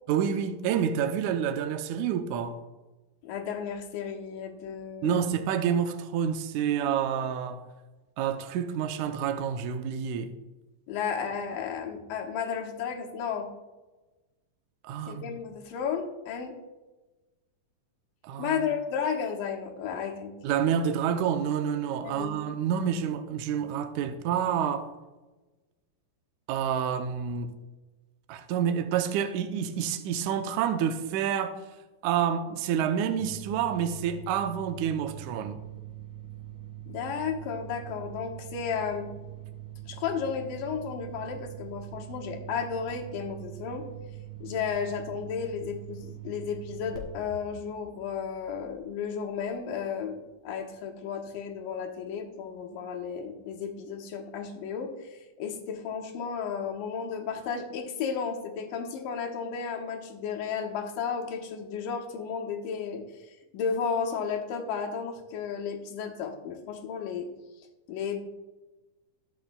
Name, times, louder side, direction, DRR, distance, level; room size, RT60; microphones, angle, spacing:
voice 1, 0.1-2.6 5.0-7.6 8.2-10.3 14.8-15.4 18.2-18.7 20.4-24.9 26.5-27.5 28.3-31.6 32.0-35.6, right 8 dB, 80° right, 1.7 m, -28 dB
voice 2, 3.2-5.2 10.9-13.5 15.1-16.6 18.4-20.3 22.0-22.4 36.9-39.2 39.9-43.9 44.4-67.3 67.9-68.3, left 6 dB, 75° left, 2.5 m, -33 dB
sound 1, 33.2-49.5, right 11 dB, 65° right, 3.1 m, -43 dB
19.5 x 7.2 x 2.2 m
omnidirectional pair, 4.1 m